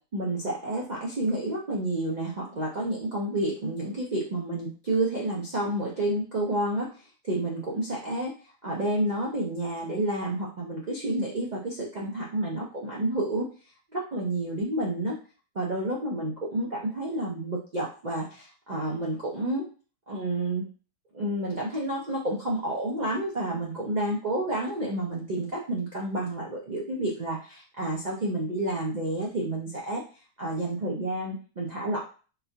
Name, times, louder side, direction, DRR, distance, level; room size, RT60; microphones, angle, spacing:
voice 1, 0.1-7.0 7.2-8.3 8.6-13.5 13.9-15.1 15.5-19.7 20.1-20.6 21.1-30.0 30.4-32.0, right 1 dB, 65° right, -4 dB, 0.4 m, -30 dB
3.8 x 2.3 x 2.7 m, 0.37 s
omnidirectional pair, 1.7 m